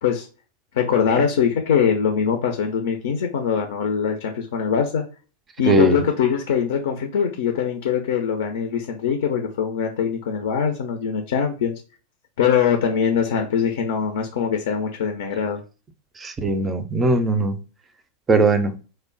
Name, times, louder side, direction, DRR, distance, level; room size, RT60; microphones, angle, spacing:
voice 1, 0.7-5.0 5.6-11.8 12.4-15.6, left 7 dB, 55° left, 0.4 m, -22 dB
voice 2, 5.7-6.0 16.2-17.6 18.3-18.7, right 2 dB, 20° right, 0.4 m, -19 dB
3.1 x 2.0 x 3.7 m
figure-of-eight pair, 90°, 0 cm